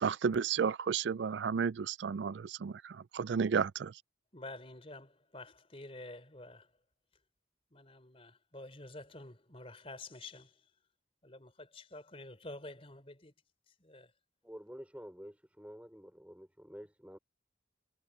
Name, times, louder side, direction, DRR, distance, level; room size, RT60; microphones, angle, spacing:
voice 1, 0.0-3.9, right 6 dB, 70° right, 0.4 m, -32 dB
voice 2, 4.3-6.7 7.7-10.5 11.2-13.3 13.8-14.1, left 2 dB, 30° left, 3.6 m, -49 dB
voice 3, 14.4-17.2, equal, 5° right, 4.7 m, -49 dB
head